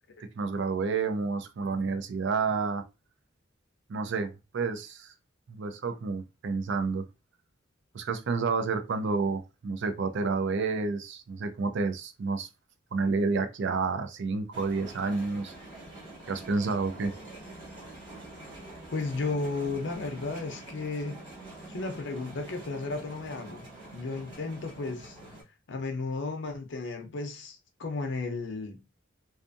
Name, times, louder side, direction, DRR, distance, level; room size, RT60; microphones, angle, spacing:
voice 1, 0.2-2.8 3.9-5.1 5.5-7.1 7.9-12.5 12.9-15.5 16.3-17.1, right 4 dB, 65° right, 0.4 m, -30 dB
sound 1, 14.5-25.4, right 1 dB, 25° right, 1.2 m, -46 dB
voice 2, 18.9-21.2 21.7-23.7 23.9-25.2 25.7-28.8, left 3 dB, 65° left, 0.6 m, -34 dB
2.6 x 2.4 x 2.4 m
head